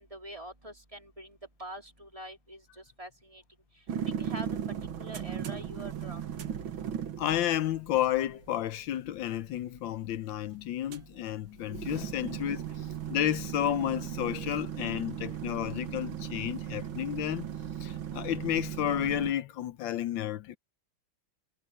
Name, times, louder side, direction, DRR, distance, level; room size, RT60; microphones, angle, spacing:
voice 1, 0.0-3.4 4.0-4.6 5.0-6.5, right 1 dB, 15° right, 2.4 m, -45 dB
sound 1, 3.9-19.3, right 9 dB, 65° right, 2.2 m, -37 dB
voice 2, 7.2-17.5 17.8-20.6, left 12 dB, 70° left, 1.3 m, -31 dB
omnidirectional pair, 2.4 m